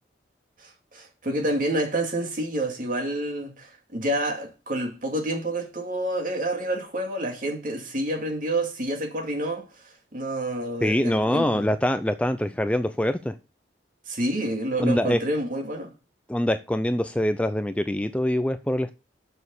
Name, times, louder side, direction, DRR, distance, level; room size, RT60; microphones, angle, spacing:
voice 1, 0.6-11.7 14.1-15.9, right 1 dB, 45° right, 2.5 m, -28 dB
voice 2, 10.8-13.4 14.8-15.2 16.3-18.9, left 1 dB, 5° left, 0.4 m, -24 dB
7.1 x 6.4 x 7.1 m
head